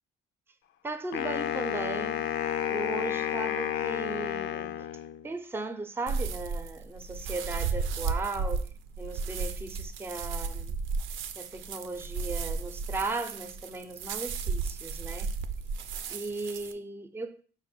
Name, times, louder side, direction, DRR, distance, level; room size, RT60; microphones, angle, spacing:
voice 1, 0.8-2.3 2.7-4.9 5.2-8.7 9.0-10.7 11.4-15.3 16.1-17.4, right 3 dB, 10° right, 0.4 m, -37 dB
Wind instrument woodwind instrument, 1.1-5.4, left 10 dB, 75° left, 0.4 m, -31 dB
sound 1, 6.1-16.7, right 4 dB, 80° right, 0.4 m, -34 dB
5.2 x 2.1 x 4.2 m
cardioid pair, 90°, 20 cm